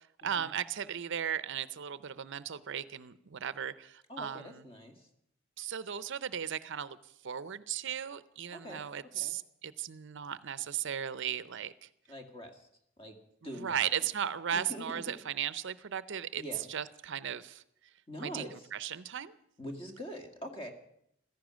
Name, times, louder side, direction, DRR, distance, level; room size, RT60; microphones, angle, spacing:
voice 1, 0.2-4.6 5.6-7.0 7.2-11.9 13.6-16.4 16.7-17.6 18.2-18.4 18.7-19.3, right 9 dB, 65° right, 15 dB, 0.6 m, -36 dB
voice 2, 4.1-5.1 8.5-9.3 12.1-12.7 13.0-13.2 13.4-14.0 14.5-15.2 16.4-16.7 18.1-18.7 19.6-20.7, equal, 25° left, 4 dB, 2.2 m, -44 dB
15.5 x 14.0 x 6.3 m, 0.73 s
head